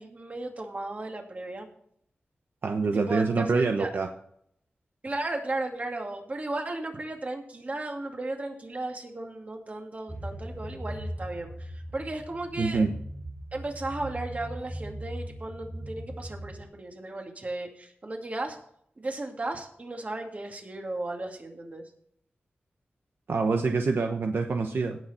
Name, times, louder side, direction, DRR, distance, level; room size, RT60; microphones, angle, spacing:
voice 1, 0.0-1.7 2.9-3.9 5.0-12.9 13.5-18.6 19.0-21.9, right 2 dB, 40° right, 2 dB, 2.5 m, -35 dB
voice 2, 2.6-4.1 12.6-12.9 23.3-25.0, right 4 dB, 70° right, 4 dB, 0.9 m, -25 dB
sound 1, 10.1-16.6, right 1 dB, 15° right, 1.5 m, -39 dB
17.5 x 6.2 x 4.3 m, 0.68 s
wide cardioid pair, 80°, 4 cm